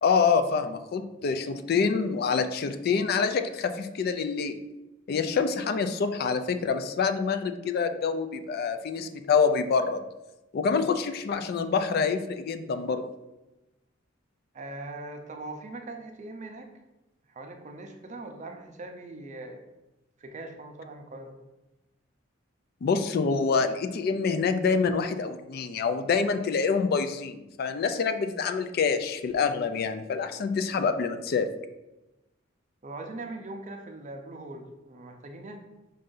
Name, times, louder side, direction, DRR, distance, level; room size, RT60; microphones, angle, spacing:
voice 1, 0.0-4.6 5.1-10.0 10.5-13.0 22.8-31.5, left 5 dB, 50° left, 9 dB, 0.3 m, -26 dB
voice 2, 14.5-16.7 17.3-19.6 20.2-21.4 32.8-35.6, right 2 dB, 40° right, 4 dB, 0.5 m, -41 dB
5.4 x 2.6 x 3.8 m, 0.99 s
head